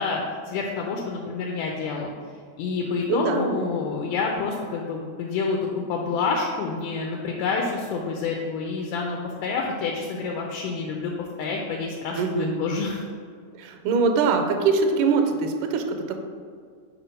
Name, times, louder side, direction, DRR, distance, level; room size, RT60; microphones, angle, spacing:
voice 1, 0.0-2.1 2.6-5.6 5.9-13.0, left 4 dB, 85° left, 0 dB, 2.1 m, -28 dB
voice 2, 3.1-3.6 12.2-12.8 13.6-16.1, right 4 dB, 80° right, 5 dB, 2.0 m, -23 dB
4.9 x 4.5 x 5.1 m, 2.1 s
omnidirectional pair, 3.7 m